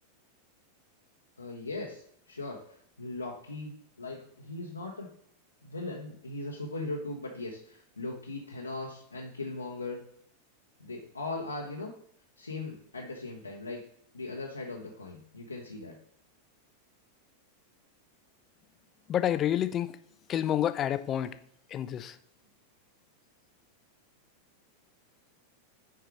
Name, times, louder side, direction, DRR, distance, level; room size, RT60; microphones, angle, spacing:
voice 1, 1.4-2.0 2.3-5.1 5.6-10.0 10.8-11.9 12.4-13.8 14.1-16.0, left 2 dB, 80° left, -1 dB, 0.9 m, -39 dB
voice 2, 19.1-20.0 20.3-21.4 21.7-22.2, left 10 dB, 30° left, 12 dB, 0.5 m, -29 dB
6.1 x 4.7 x 4.8 m, 0.65 s
figure-of-eight pair, 90°, 0 cm